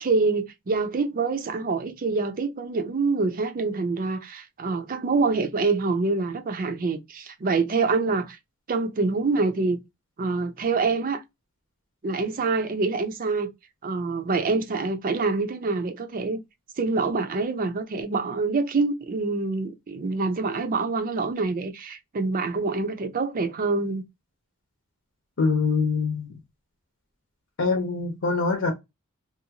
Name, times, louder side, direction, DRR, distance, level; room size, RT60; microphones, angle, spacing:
voice 1, 0.0-8.4 8.7-9.8 10.2-11.2 12.0-13.5 13.8-16.4 16.8-24.0, right 3 dB, 40° right, 0.5 m, -26 dB
voice 2, 25.4-26.3 27.6-28.7, left 4 dB, 65° left, 0.8 m, -24 dB
2.6 x 2.3 x 2.8 m
head